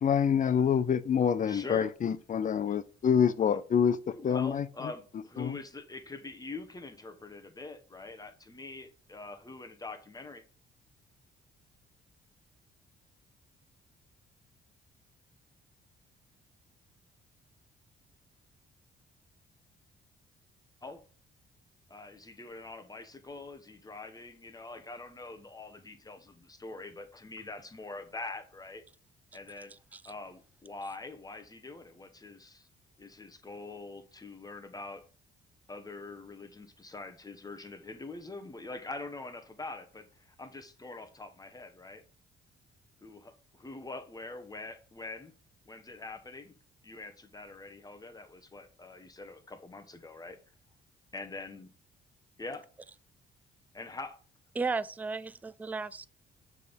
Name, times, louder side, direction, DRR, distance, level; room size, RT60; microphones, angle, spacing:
voice 1, 0.0-4.0 4.2-4.7 5.4-5.6, left 7 dB, 40° left, 0.5 m, -26 dB
voice 2, 1.5-1.9 2.7-2.8 4.1-10.4 20.8-21.0 21.9-28.8 29.3-29.7 30.0-32.7 33.0-35.0 35.7-42.0 43.0-45.3 45.6-46.5 46.8-50.4 51.1-51.7 52.4-52.7 53.7-54.2, left 3 dB, 20° left, 1.1 m, -44 dB
voice 3, 29.7-30.0 54.6-56.1, right 4 dB, 10° right, 0.3 m, -35 dB
6.6 x 3.6 x 5.2 m
cardioid pair, 90°, 20 cm